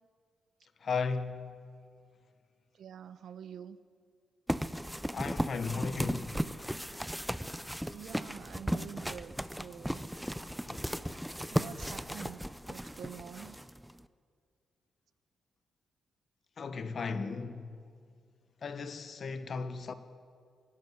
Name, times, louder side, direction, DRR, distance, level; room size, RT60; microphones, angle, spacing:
voice 1, 0.8-1.5 5.1-6.3 10.6-10.9 16.6-17.7 18.6-19.9, left 4 dB, 45° left, 1.2 m, -36 dB
voice 2, 2.8-3.8 7.9-10.0 11.5-12.4 12.7-13.6, right 8 dB, 70° right, 0.8 m, -47 dB
sound 1, 4.5-14.0, equal, ahead, 0.5 m, -36 dB
24.0 x 11.5 x 9.4 m
cardioid pair, 130°, 0 cm